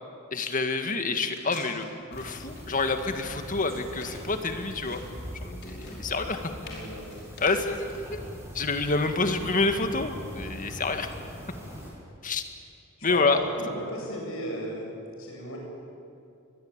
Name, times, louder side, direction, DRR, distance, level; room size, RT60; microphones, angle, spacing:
voice 1, 0.3-5.0 5.4-6.5 7.4-8.2 8.5-11.1 12.2-12.4 13.0-13.4, left 3 dB, 40° left, 7 dB, 1.9 m, -28 dB
sound 1, 1.0-8.0, left 3 dB, 55° left, 5.4 m, -48 dB
sound 2, 2.1-11.9, equal, 15° right, 7.5 m, -42 dB
voice 2, 6.6-7.1 13.0-14.9 15.2-15.6, equal, 70° left, -1 dB, 7.9 m, -36 dB
24.0 x 20.0 x 9.0 m, 2.5 s
head